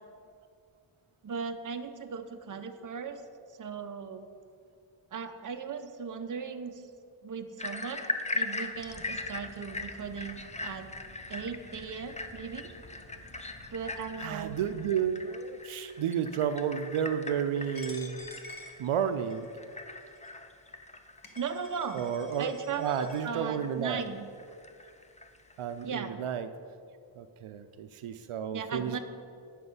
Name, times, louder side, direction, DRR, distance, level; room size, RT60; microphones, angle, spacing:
voice 1, 1.2-3.2 3.6-4.3 5.1-6.8 7.2-8.1 8.3-10.9 11.3-12.7 13.7-14.6 21.4-22.0 22.4-24.2 25.8-26.2 28.5-29.0, right 6 dB, 40° right, 7 dB, 0.6 m, -37 dB
sound 1, 7.6-25.9, left 2 dB, 15° left, 0.4 m, -41 dB
sound 2, 8.7-14.9, left 1 dB, 80° left, 1.9 m, -53 dB
voice 2, 14.2-18.2 18.8-19.5 21.9-24.0 25.6-26.5 27.2-29.0, right 8 dB, 80° right, 10 dB, 0.5 m, -32 dB
Coin (dropping), 17.8-19.5 20.2-20.3 21.0-21.1 21.2-23.2, left 2 dB, 45° left, 1.0 m, -49 dB
9.6 x 6.1 x 5.4 m, 2.4 s
wide cardioid pair, 120°, 49 cm